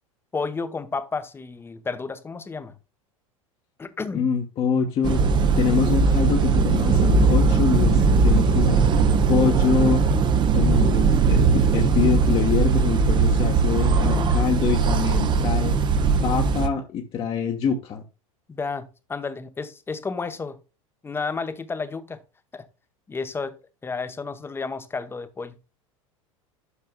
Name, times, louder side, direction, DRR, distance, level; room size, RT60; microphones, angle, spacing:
voice 1, 0.3-2.8 3.8-4.3 14.0-14.4 18.5-20.6 21.0-22.2 22.5-22.7 23.1-25.6, left 4 dB, 15° left, 0.8 m, -32 dB
voice 2, 4.1-5.2 5.6-8.8 9.3-10.0 10.5-15.8 16.2-18.0, left 7 dB, 30° left, 1.1 m, -25 dB
sound 1, 5.0-16.7, right 4 dB, 25° right, 0.7 m, -19 dB
11.0 x 6.6 x 2.2 m
figure-of-eight pair, 80°, 18 cm